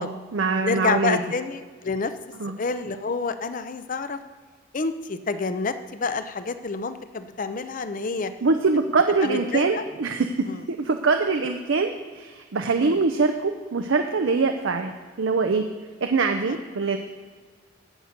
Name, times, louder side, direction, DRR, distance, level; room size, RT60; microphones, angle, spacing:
voice 1, 0.0-1.2 2.4-2.5 8.4-15.6 16.0-17.0, right 4 dB, 80° right, 5 dB, 0.6 m, -23 dB
voice 2, 0.6-2.1 2.6-4.2 4.7-8.3 9.2-9.8 10.5-10.6 12.8-13.0 16.5-16.6, left 4 dB, 45° left, 11 dB, 0.6 m, -28 dB
11.0 x 8.0 x 5.2 m, 1.5 s
head